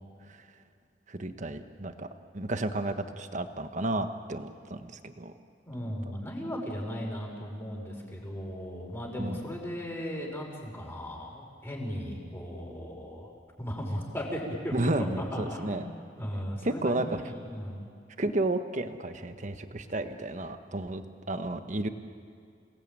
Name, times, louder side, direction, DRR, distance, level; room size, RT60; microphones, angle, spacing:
voice 1, 1.1-2.1 2.3-5.3 9.2-9.4 14.7-15.8 16.6-17.2 18.2-21.9, right 2 dB, 45° right, 8 dB, 1.3 m, -32 dB
voice 2, 5.7-13.3 13.6-14.7 15.2-15.9 16.2-17.9, equal, 15° left, -1 dB, 5.3 m, -37 dB
28.5 x 19.0 x 9.1 m, 2.3 s
head